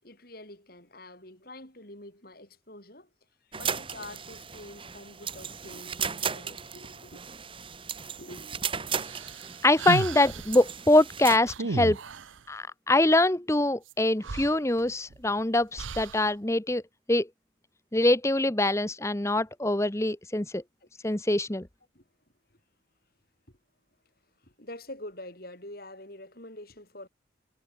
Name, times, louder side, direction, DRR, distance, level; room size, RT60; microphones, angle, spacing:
voice 1, 0.0-3.1 3.6-7.2 8.0-8.8 20.8-20.9 21.3-21.4 21.9-22.0 24.4-27.1, left 1 dB, 50° left, 7.7 m, -46 dB
sound 1, 3.5-11.4, right 7 dB, 25° right, 1.3 m, -36 dB
sound 2, 9.0-10.6 11.5-12.4 13.9-14.0 14.2-15.2 15.8-16.3, right 3 dB, 90° right, 0.8 m, -34 dB
voice 2, 9.6-12.0 12.5-16.8 17.1-17.3 17.9-20.6 21.0-21.7, left 1 dB, 15° left, 1.0 m, -24 dB
head